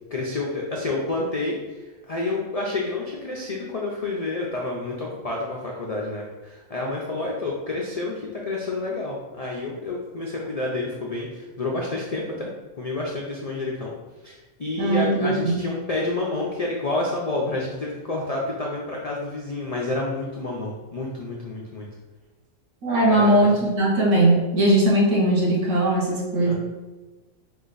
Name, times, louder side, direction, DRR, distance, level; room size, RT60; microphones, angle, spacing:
voice 1, 0.1-12.5 12.8-13.9 14.2-21.9 23.1-23.6 26.4-26.5, left 2 dB, 65° left, -3 dB, 0.3 m, -29 dB
voice 2, 14.8-15.6 22.8-26.5, right 1 dB, 65° right, -4 dB, 1.4 m, -19 dB
4.9 x 2.4 x 3.9 m, 1.2 s
omnidirectional pair, 1.4 m